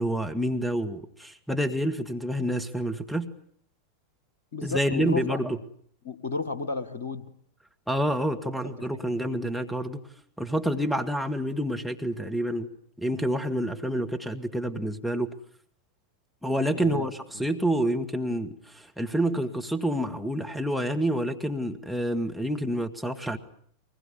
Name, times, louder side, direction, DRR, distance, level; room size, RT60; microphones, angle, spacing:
voice 1, 0.0-3.3 4.6-5.6 7.9-10.0 10.4-12.7 13.0-15.3 16.4-23.4, equal, ahead, 2.0 m, -28 dB
voice 2, 4.5-5.4 6.0-7.3 8.6-8.7 16.7-17.1, left 4 dB, 60° left, 1.9 m, -32 dB
23.5 x 20.5 x 9.8 m
figure-of-eight pair, 90°, 0 cm